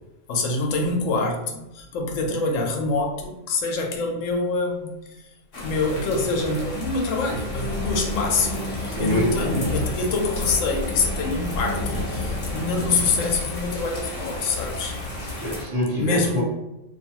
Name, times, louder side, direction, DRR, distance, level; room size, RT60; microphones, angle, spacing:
voice 1, 0.3-5.2 5.6-15.0 16.0-16.4, left 3 dB, 80° left, 1 dB, 1.0 m, -25 dB
sound 1, 5.5-15.6, left 2 dB, 55° left, 0.9 m, -30 dB
voice 2, 8.8-9.8 15.4-16.4, equal, 45° right, -6 dB, 1.0 m, -25 dB
2.6 x 2.3 x 2.8 m, 0.96 s
omnidirectional pair, 1.3 m